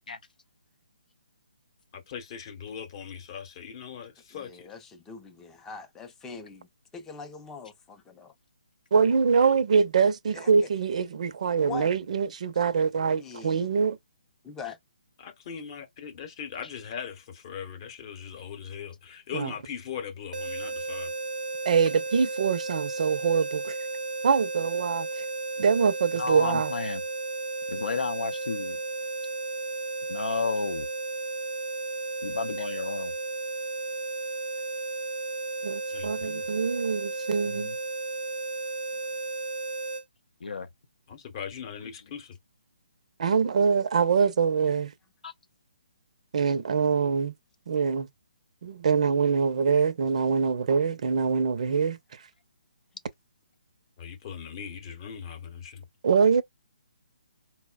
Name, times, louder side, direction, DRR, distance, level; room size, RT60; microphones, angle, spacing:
voice 1, 1.9-4.7 9.4-9.6 15.2-21.1 35.9-36.5 41.1-42.4 54.0-55.9, left 7 dB, 35° left, 0.8 m, -40 dB
voice 2, 4.3-8.3 10.3-10.5 11.6-11.9 13.1-13.8 14.4-14.8 23.3-23.4, left 4 dB, 10° left, 0.5 m, -42 dB
voice 3, 8.9-14.0 19.3-19.5 21.7-23.8 24.2-25.2 25.6-26.7 35.6-37.7 43.2-44.9 46.3-47.3 47.7-48.1 48.6-52.0 56.0-56.4, right 6 dB, 55° right, 0.5 m, -24 dB
sound 1, 20.3-40.0, right 3 dB, 85° right, 0.8 m, -34 dB
voice 4, 26.1-27.0 27.7-28.8 30.1-30.9 32.2-33.1 37.4-37.8 40.4-40.7 45.2-45.3, left 4 dB, 75° left, 0.5 m, -32 dB
4.1 x 2.1 x 2.2 m
hypercardioid pair, 150°, 5 cm